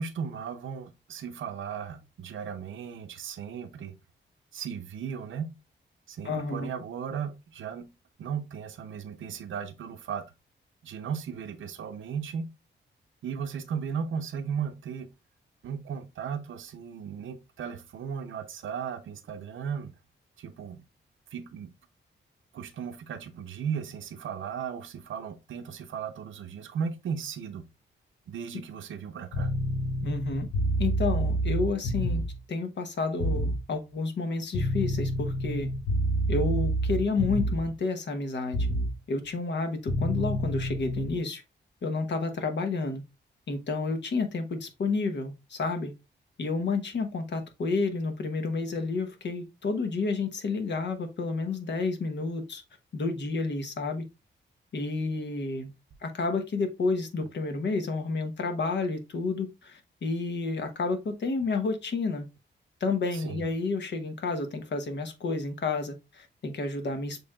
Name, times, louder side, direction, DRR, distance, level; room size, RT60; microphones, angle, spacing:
voice 1, 0.0-3.9 4.5-5.5 6.1-7.9 8.2-10.2 10.8-12.4 13.2-15.1 15.6-19.9 20.4-20.8 21.3-21.7 22.5-27.6 28.3-29.5 63.1-63.5, right 7 dB, 85° right, 0.7 m, -36 dB
voice 2, 6.2-6.7 30.0-30.5 30.8-32.2 32.5-35.7 36.3-38.7 39.1-41.4 41.8-43.0 43.5-45.9 46.4-52.6 52.9-54.0 54.7-55.7 56.0-62.3 62.8-67.2, left 3 dB, 65° left, 1.1 m, -30 dB
sound 1, 29.3-32.4 33.2-33.6 34.5-37.7 38.5-38.9 39.9-41.1, right 1 dB, 90° left, 2.3 m, -28 dB
6.9 x 3.2 x 2.4 m
cardioid pair, 100°, 20 cm